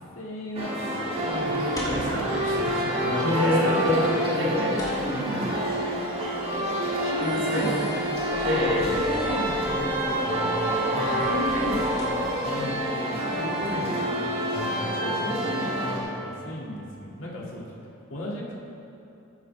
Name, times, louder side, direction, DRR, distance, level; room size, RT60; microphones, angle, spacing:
voice 1, 0.1-3.3 4.1-4.6 7.0-7.9 8.5-17.6 18.1-18.5, left 1 dB, 80° left, -4 dB, 2.0 m, -35 dB
sound 1, 0.6-16.0, equal, 30° right, 1.6 m, -27 dB
sound 2, 1.1-12.5, equal, 20° left, 2.0 m, -43 dB
voice 2, 1.8-2.5 3.1-4.1 4.4-5.5 7.2-7.7 8.4-8.9 11.5-11.7 13.7-13.9, left 1 dB, 65° right, -5 dB, 2.5 m, -27 dB
14.0 x 9.7 x 3.3 m, 2.8 s
head